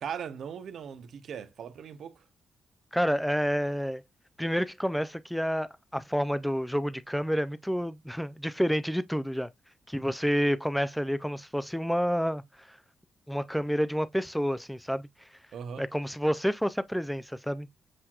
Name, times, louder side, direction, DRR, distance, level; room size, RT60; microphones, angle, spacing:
voice 1, 0.0-2.2 15.5-15.9, right 7 dB, 65° right, 0.6 m, -39 dB
voice 2, 2.9-4.0 4.4-9.5 9.9-12.8 13.3-15.3 15.8-17.7, equal, ahead, 0.3 m, -29 dB
7.6 x 2.8 x 2.3 m
wide cardioid pair, 155°, 0 cm